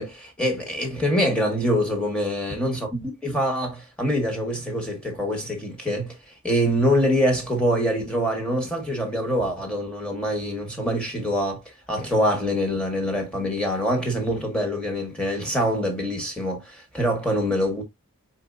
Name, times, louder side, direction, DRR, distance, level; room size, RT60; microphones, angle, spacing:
voice 1, 0.0-6.2 6.4-11.6 11.9-17.8, equal, 5° left, 1.4 m, -25 dB
4.4 x 4.4 x 2.6 m
head